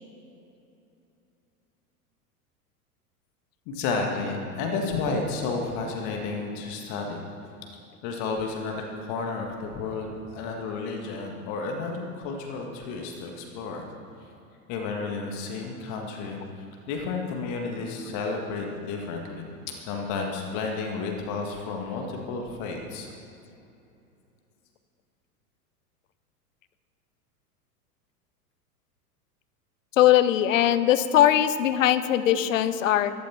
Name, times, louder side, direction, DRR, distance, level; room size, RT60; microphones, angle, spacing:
voice 1, 3.7-7.2 8.0-10.1 10.3-13.8 14.7-16.4 16.9-23.1, left 4 dB, 40° left, 1 dB, 1.7 m, -31 dB
voice 2, 30.0-33.1, left 11 dB, 55° left, 13 dB, 0.8 m, -20 dB
14.0 x 12.0 x 4.3 m, 2.8 s
figure-of-eight pair, 90°, 46 cm